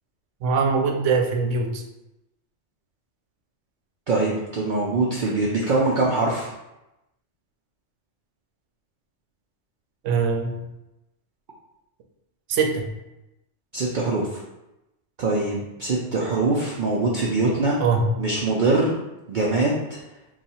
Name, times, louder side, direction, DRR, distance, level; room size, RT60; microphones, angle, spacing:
voice 1, 0.4-1.8 10.0-10.6 12.5-12.9 17.8-18.1, right 4 dB, 80° right, 3 dB, 0.9 m, -22 dB
voice 2, 4.1-6.5 13.7-14.4 15.2-17.8 18.2-18.9 19.3-20.0, right 2 dB, 60° right, -4 dB, 0.5 m, -23 dB
2.7 x 2.4 x 4.1 m, 0.94 s
omnidirectional pair, 1.2 m